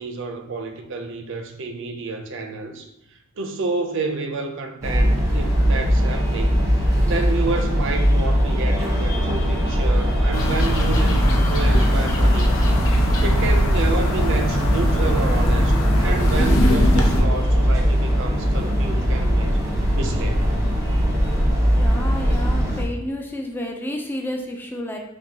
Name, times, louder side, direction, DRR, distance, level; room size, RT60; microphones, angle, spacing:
voice 1, 0.0-2.9 3.4-6.7 7.0-12.5 13.2-19.6 19.9-20.5, right 3 dB, 65° right, 0.5 m, -29 dB
sound 1, 4.8-22.8, equal, 15° right, 1.0 m, -20 dB
sound 2, 10.3-17.2, equal, 80° left, 0.7 m, -22 dB
voice 2, 21.7-25.0, left 1 dB, 10° left, 0.4 m, -30 dB
5.7 x 2.2 x 2.8 m
head